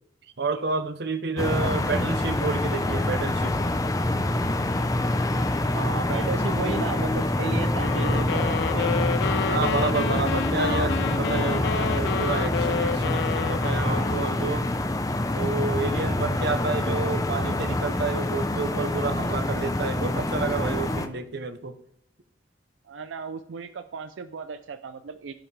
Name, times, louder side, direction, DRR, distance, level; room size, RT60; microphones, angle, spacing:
voice 1, 0.4-3.6 9.5-14.7 15.3-21.8, right 3 dB, 60° right, 0.8 m, -29 dB
sound 1, 1.4-21.1, left 1 dB, 20° left, 0.6 m, -26 dB
voice 2, 1.6-2.0 5.7-9.0 16.8-17.0 22.8-25.3, right 5 dB, 85° right, 0.5 m, -35 dB
sound 2, 7.8-14.6, left 5 dB, 65° left, 0.4 m, -30 dB
15.5 x 5.7 x 3.3 m
head